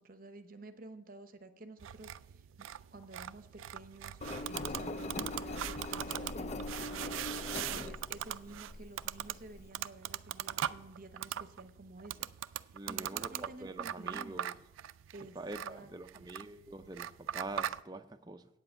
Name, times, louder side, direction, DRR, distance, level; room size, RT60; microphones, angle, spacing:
voice 1, 0.0-12.3 12.9-14.4 15.1-16.2, right 2 dB, 45° right, 0.9 m, -52 dB
sound 1, 1.8-17.8, right 11 dB, 90° right, 0.3 m, -41 dB
Engine, 4.2-9.7, left 2 dB, 35° left, 0.4 m, -41 dB
voice 2, 12.7-14.5 15.3-18.4, right 2 dB, 20° right, 0.5 m, -45 dB
8.9 x 7.6 x 7.3 m
head